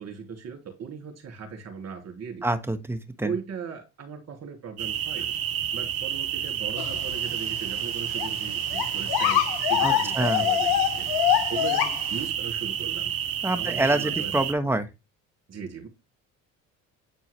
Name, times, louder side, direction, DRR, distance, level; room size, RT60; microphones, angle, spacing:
voice 1, 0.0-2.4 3.2-5.3 5.7-9.4 9.7-11.1 11.5-13.1 13.6-14.7 15.5-15.9, right 6 dB, 40° right, 2.8 m, -38 dB
voice 2, 2.4-3.3 9.8-10.4 13.4-14.9, right 2 dB, 5° right, 1.3 m, -26 dB
sound 1, 4.8-14.5, right 10 dB, 60° right, 1.0 m, -30 dB
sound 2, 6.8-7.2 7.5-7.6 8.2-8.3 8.7-12.1, left 13 dB, 65° left, 0.8 m, -25 dB
8.9 x 4.4 x 3.3 m
hypercardioid pair, 60°, 41 cm